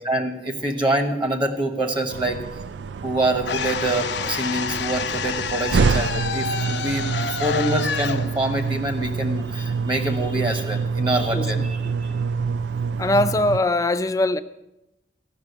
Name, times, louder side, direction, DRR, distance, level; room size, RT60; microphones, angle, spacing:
voice 1, 0.0-2.4 3.0-7.1 7.4-11.8, right 1 dB, 30° right, 5 dB, 1.2 m, -25 dB
sound 1, 2.1-13.6, right 5 dB, 90° right, 0.4 m, -27 dB
sound 2, 3.4-9.5, left 6 dB, 85° left, 0.7 m, -29 dB
voice 2, 11.3-12.3 13.0-14.4, left 2 dB, 20° left, 10 dB, 0.4 m, -23 dB
13.5 x 6.1 x 8.1 m, 0.92 s
head